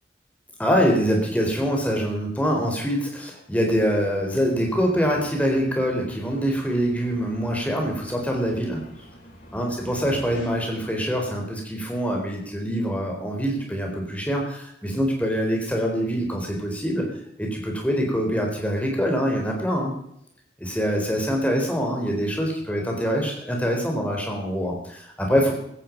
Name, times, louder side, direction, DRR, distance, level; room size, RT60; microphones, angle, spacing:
voice 1, 0.6-8.8 9.5-17.1 17.4-20.0 20.6-25.5, equal, 10° left, 1 dB, 4.1 m, -24 dB
sound 1, 3.6-10.5, equal, 45° left, 7.5 m, -45 dB
16.5 x 14.0 x 5.3 m, 0.74 s
head